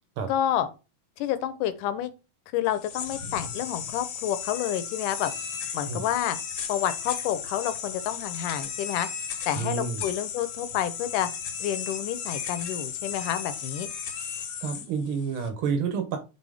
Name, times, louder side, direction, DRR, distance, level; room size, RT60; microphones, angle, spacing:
voice 1, 0.3-0.7 1.2-2.1 2.5-5.3 5.7-6.4 6.7-9.1 9.5-11.3 11.6-13.9, left 11 dB, 80° left, 2.2 m, -29 dB
sound 1, 2.7-15.5, left 7 dB, 60° left, 2.0 m, -35 dB
voice 2, 9.6-10.0 14.6-16.2, right 5 dB, 85° right, 1.1 m, -29 dB
6.1 x 4.2 x 4.8 m
omnidirectional pair, 3.8 m